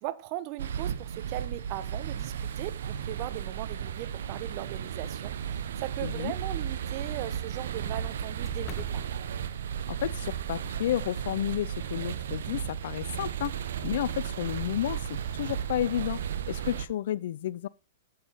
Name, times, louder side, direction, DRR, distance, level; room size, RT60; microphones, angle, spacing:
voice 1, 0.0-5.3 5.8-9.1, right 15 dB, 45° right, 0.8 m, -38 dB
sound 1, 0.6-16.9, right 8 dB, 70° right, 0.8 m, -34 dB
voice 2, 6.0-6.3 9.9-17.7, left 12 dB, 65° left, 0.4 m, -32 dB
sound 2, 8.4-9.7 10.3-11.1 13.1-13.5, left 4 dB, 30° left, 1.2 m, -47 dB
8.0 x 7.7 x 4.0 m
hypercardioid pair, 115°, 0 cm